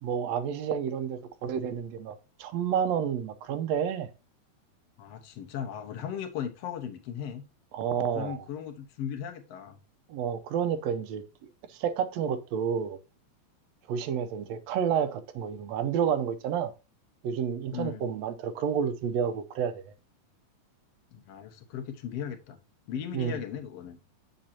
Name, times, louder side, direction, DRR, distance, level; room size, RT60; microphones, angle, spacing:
voice 1, 0.0-4.1 7.7-8.5 10.1-13.0 13.9-16.7 17.2-19.9 23.1-23.4, right 8 dB, 75° right, 1.8 m, -30 dB
voice 2, 5.0-7.4 8.1-9.8 17.7-18.1 21.1-22.6 22.9-24.0, left 8 dB, 65° left, 2.1 m, -37 dB
7.9 x 7.4 x 2.8 m
omnidirectional pair, 3.3 m